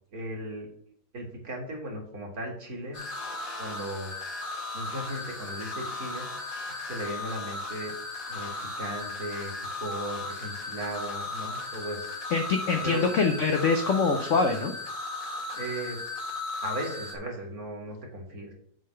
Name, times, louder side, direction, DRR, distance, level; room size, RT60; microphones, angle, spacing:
voice 1, 0.1-0.7 1.1-3.0 3.6-4.1 4.7-6.3 6.8-7.9 8.3-8.5 8.8-9.5 9.8-12.0 12.8-13.1 15.5-16.0 16.6-18.5, right 1 dB, 50° right, 0 dB, 2.4 m, -36 dB
sound 1, 2.9-17.2, left 3 dB, 45° left, 2.1 m, -36 dB
voice 2, 12.3-14.7, left 4 dB, 65° left, 6 dB, 0.8 m, -24 dB
7.7 x 3.8 x 6.4 m, 0.63 s
omnidirectional pair, 2.0 m